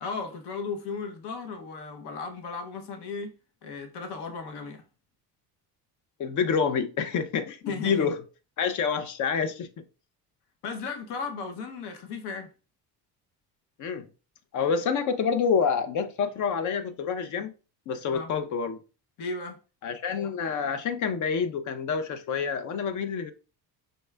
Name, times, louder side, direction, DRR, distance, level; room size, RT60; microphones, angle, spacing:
voice 1, 0.0-4.8 7.6-8.1 10.6-12.5 18.1-18.3 19.2-19.6, left 4 dB, 70° left, 0.9 m, -35 dB
voice 2, 6.2-8.2 8.6-9.8 13.8-14.0 14.5-17.5 17.9-18.8 19.8-23.3, left 6 dB, 45° left, 0.5 m, -27 dB
5.3 x 2.3 x 3.2 m
cardioid pair, 165°, 41 cm